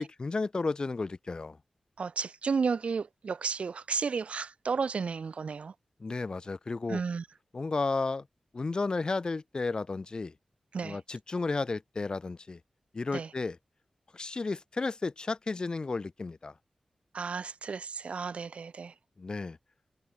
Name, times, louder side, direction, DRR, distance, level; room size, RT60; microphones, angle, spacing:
voice 1, 0.0-1.6 6.0-7.0 7.5-8.2 8.5-10.3 10.8-12.6 12.9-13.6 14.1-16.5 19.2-19.6, left 3 dB, 40° left, 6.2 m, -33 dB
voice 2, 2.0-5.7 6.9-7.3 10.7-11.0 13.1-13.3 17.1-18.9, right 5 dB, 65° right, 2.5 m, -33 dB
wide cardioid pair, 135°, 2 cm